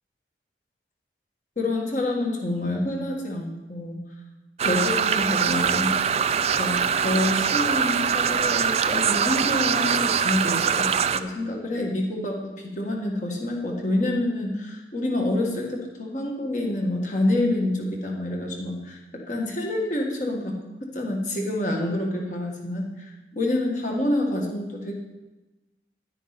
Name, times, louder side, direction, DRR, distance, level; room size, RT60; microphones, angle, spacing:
voice 1, 1.6-4.0 4.6-6.0 6.5-19.0 19.3-20.6 20.9-24.9, left 1 dB, 40° left, 0 dB, 1.8 m, -27 dB
sound 1, 4.6-11.2, right 7 dB, 35° right, 0.3 m, -23 dB
10.5 x 9.8 x 4.2 m, 1.1 s
head